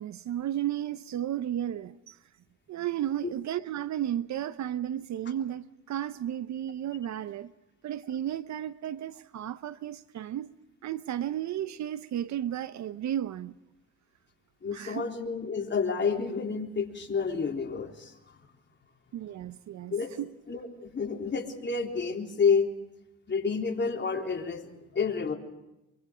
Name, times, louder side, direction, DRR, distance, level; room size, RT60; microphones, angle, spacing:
voice 1, 0.0-2.2 2.7-7.5 7.8-10.5 10.8-13.5 14.7-15.1 19.1-20.3, right 11 dB, 65° right, 0.9 m, -33 dB
voice 2, 14.6-18.4 19.9-20.2 20.5-22.7 23.3-25.4, left 5 dB, 35° left, 3.7 m, -29 dB
24.5 x 24.0 x 5.1 m
cardioid pair, 90°, 30 cm